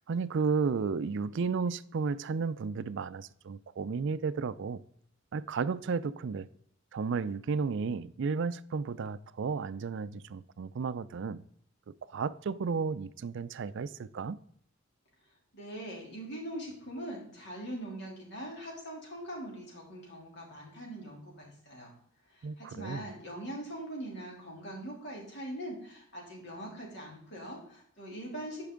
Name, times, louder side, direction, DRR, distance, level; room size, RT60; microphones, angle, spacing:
voice 1, 0.0-4.8 5.3-6.5 6.9-11.4 12.1-14.4 22.4-23.1, right 5 dB, 60° right, 0.4 m, -33 dB
voice 2, 15.5-21.9 22.3-28.7, right 1 dB, 55° left, 3.1 m, -42 dB
10.5 x 5.4 x 3.7 m
head